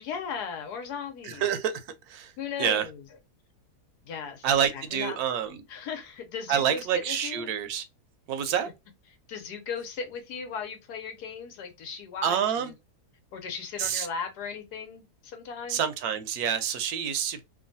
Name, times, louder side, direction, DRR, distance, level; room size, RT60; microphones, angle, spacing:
voice 1, 0.0-1.5 2.4-3.0 4.0-4.5 4.7-5.2 5.7-7.5 9.3-12.7 13.3-15.8, left 6 dB, 90° left, 1.3 m, -37 dB
voice 2, 1.2-2.3 2.6-2.9 4.4-5.6 6.5-7.8 8.3-8.7 12.2-12.7 13.8-14.1 15.7-17.4, right 8 dB, 75° right, 1.0 m, -27 dB
3.0 x 2.2 x 2.5 m
omnidirectional pair, 1.7 m